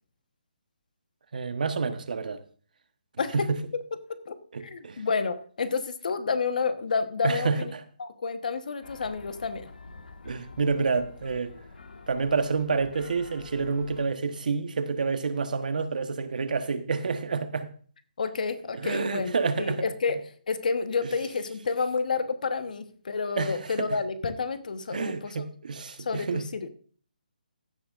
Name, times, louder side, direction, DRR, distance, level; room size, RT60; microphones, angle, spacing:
voice 1, 1.3-2.4 3.3-3.6 4.5-5.0 7.2-7.8 10.2-11.5 12.1-17.7 18.8-19.8 23.4-23.9 24.9-26.4, right 4 dB, 65° right, 1.2 m, -28 dB
voice 2, 4.6-7.7 8.0-9.7 18.2-19.3 19.6-20.2 20.5-25.4 26.0-26.7, left 4 dB, 60° left, 1.2 m, -29 dB
sound 1, 8.8-14.1, left 4 dB, 85° left, 1.6 m, -47 dB
15.5 x 9.8 x 2.5 m
hypercardioid pair, 165°, 5 cm